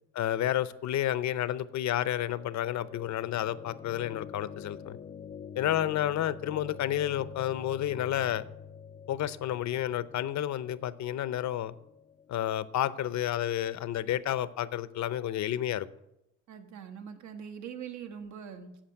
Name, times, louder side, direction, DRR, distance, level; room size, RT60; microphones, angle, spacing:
voice 1, 0.1-5.0 5.6-8.4 9.1-11.7 12.3-15.9, left 12 dB, 65° left, 16 dB, 0.7 m, -30 dB
sound 1, 1.6-13.7, left 7 dB, 25° left, 0.4 m, -47 dB
voice 2, 16.5-18.8, right 7 dB, 70° right, 7 dB, 1.5 m, -42 dB
8.8 x 7.3 x 8.9 m, 0.86 s
cardioid pair, 90°, 30 cm